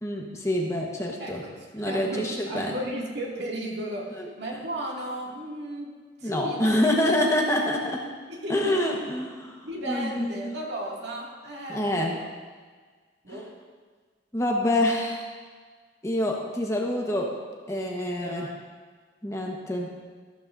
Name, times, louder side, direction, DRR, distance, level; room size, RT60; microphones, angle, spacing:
voice 1, 0.0-1.4 1.7-2.7 6.2-8.0 8.5-10.5 11.7-12.2 14.3-15.2 16.0-17.3 17.7-18.5 19.2-20.0, left 1 dB, 15° left, 0 dB, 1.2 m, -26 dB
voice 2, 1.2-6.8 8.3-9.0 9.6-12.3 13.2-13.5 18.1-18.5, right 1 dB, 65° right, -3 dB, 2.4 m, -35 dB
14.0 x 13.5 x 2.7 m, 1.5 s
head